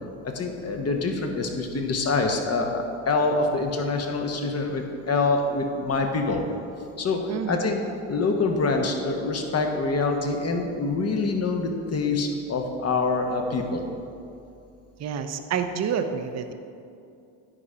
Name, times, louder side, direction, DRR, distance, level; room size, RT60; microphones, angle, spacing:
voice 1, 0.2-6.4 7.0-7.8 8.1-13.8, left 3 dB, 35° left, 3 dB, 1.1 m, -25 dB
voice 2, 7.3-7.6 15.0-16.5, right 7 dB, 40° right, 7 dB, 0.7 m, -28 dB
10.0 x 4.2 x 5.0 m, 2.5 s
supercardioid pair, 80°, 42 cm